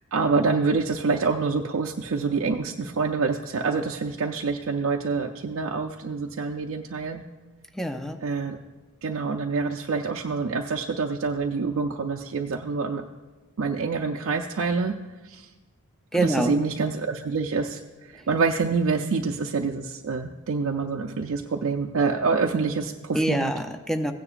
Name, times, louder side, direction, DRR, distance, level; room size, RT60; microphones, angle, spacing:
voice 1, 0.0-7.2 8.2-8.6 9.0-13.0 13.6-14.9 15.2-15.5 16.1-23.5, right 4 dB, 65° right, 2 dB, 0.5 m, -26 dB
voice 2, 7.7-8.2 16.1-16.6 18.1-18.3 23.1-24.1, right 1 dB, ahead, 7 dB, 0.5 m, -26 dB
16.0 x 9.7 x 2.5 m, 1.2 s
head